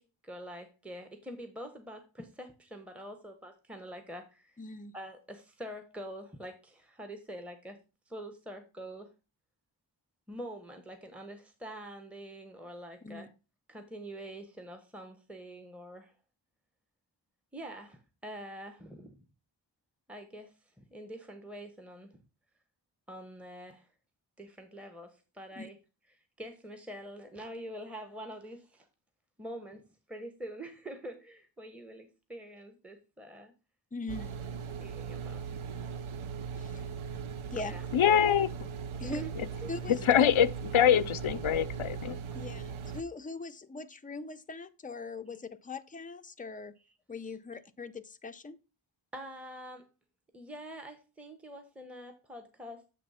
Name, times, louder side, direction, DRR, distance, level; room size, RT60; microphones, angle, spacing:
voice 1, 0.0-4.6 4.9-7.8 8.1-9.1 10.3-13.3 13.7-16.1 17.5-19.2 20.1-22.1 23.1-23.9 24.4-25.8 26.4-28.9 29.4-29.8 30.1-33.5 34.8-35.4 37.6-37.9 39.0-39.3 39.6-39.7 49.1-49.8 50.3-52.8, right 1 dB, 5° right, 1.0 m, -45 dB
voice 2, 4.6-4.9 13.0-13.3 25.6-25.7 33.9-34.3 36.6-36.8 37.5-37.8 39.0-39.2 39.7-40.3 42.3-46.7 47.1-48.6, left 3 dB, 20° left, 0.5 m, -41 dB
sound 1, 34.1-43.0, right 6 dB, 85° right, 0.6 m, -39 dB
voice 3, 37.9-38.5 40.0-42.2, left 9 dB, 80° left, 0.6 m, -24 dB
7.7 x 3.0 x 5.5 m
wide cardioid pair, 45°, 47 cm